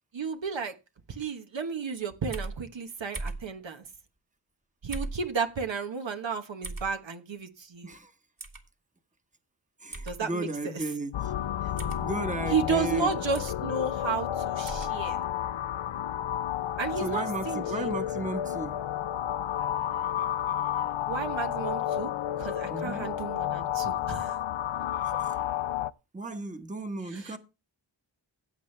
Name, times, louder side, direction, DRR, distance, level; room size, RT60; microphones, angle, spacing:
voice 1, 0.1-0.7 1.1-3.8 4.8-7.9 10.0-10.8 12.5-15.2 16.8-17.9 21.1-22.1 22.4-24.4 25.1-25.2 27.1-27.4, right 5 dB, 70° right, 1.2 m, -33 dB
sound 1, 2.3-2.6 3.1-3.4 4.9-5.2 6.6-6.9 8.4-8.6 9.9-10.2 11.8-12.0 13.3-13.6 14.6-14.9, right 2 dB, 45° right, 2.0 m, -37 dB
voice 2, 9.8-11.3 12.0-13.1 17.0-18.8 22.7-23.1 25.0-25.4 26.1-27.4, right 2 dB, 15° right, 1.2 m, -34 dB
sound 2, 11.1-25.9, left 11 dB, 75° left, 0.6 m, -31 dB
15.5 x 8.1 x 3.3 m
wide cardioid pair, 85°, 46 cm